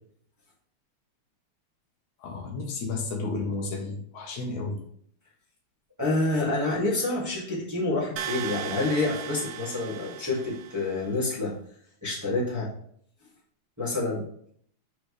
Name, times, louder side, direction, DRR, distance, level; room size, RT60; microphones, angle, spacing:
voice 1, 2.2-4.8, left 3 dB, 80° left, 2 dB, 2.6 m, -32 dB
voice 2, 6.0-11.5 12.0-12.7 13.8-14.2, left 2 dB, 5° right, -7 dB, 1.6 m, -28 dB
sound 1, 8.2-11.1, right 10 dB, 90° right, 2.2 m, -37 dB
7.0 x 6.2 x 3.3 m, 0.64 s
omnidirectional pair, 3.4 m